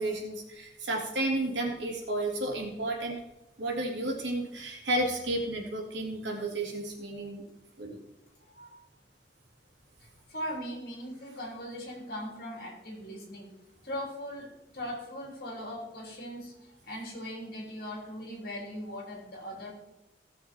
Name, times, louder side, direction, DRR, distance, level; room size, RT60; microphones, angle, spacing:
voice 1, 0.0-3.2 3.6-7.4 7.8-8.0, right 1 dB, 85° right, 0 dB, 2.6 m, -32 dB
voice 2, 10.3-13.5 13.8-19.7, equal, 55° left, -1 dB, 3.5 m, -39 dB
16.0 x 6.8 x 4.5 m, 0.92 s
head